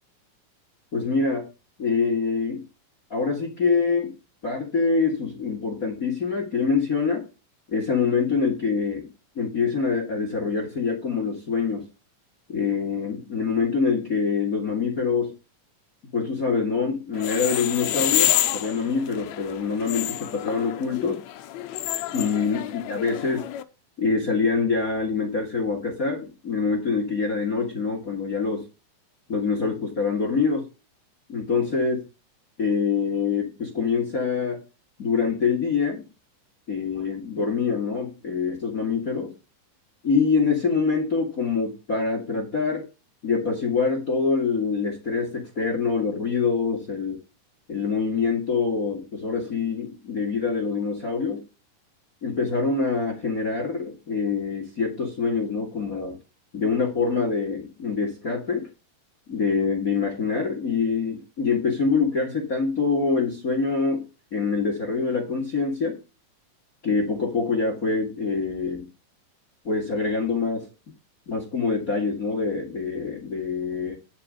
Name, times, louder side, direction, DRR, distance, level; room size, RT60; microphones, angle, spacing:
voice 1, 0.9-1.5 1.8-2.6 3.1-4.1 4.4-7.2 7.7-9.1 9.4-11.8 12.5-15.3 16.1-21.2 22.1-23.5 24.0-28.6 29.3-30.6 31.3-32.0 32.6-34.6 35.0-36.1 36.7-39.3 40.0-42.9 43.2-47.2 47.7-51.4 52.2-56.2 56.5-58.7 59.3-64.0 64.3-66.0 66.8-68.9 69.6-70.7 71.3-73.9, left 5 dB, 30° left, 2 dB, 1.8 m, -25 dB
sound 1, 17.1-23.6, left 13 dB, 80° left, 1.7 m, -28 dB
10.0 x 5.1 x 5.0 m, 0.30 s
omnidirectional pair, 3.9 m